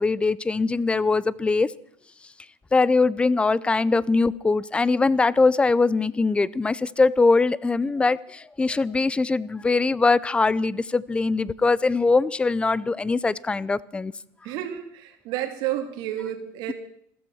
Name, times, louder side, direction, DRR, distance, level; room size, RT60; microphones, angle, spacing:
voice 1, 0.0-1.7 2.7-14.1, left 3 dB, 15° left, 21 dB, 0.5 m, -22 dB
voice 2, 14.4-16.7, right 12 dB, 65° right, 6 dB, 2.8 m, -30 dB
15.0 x 13.5 x 6.3 m, 0.67 s
supercardioid pair, 120°, 8 cm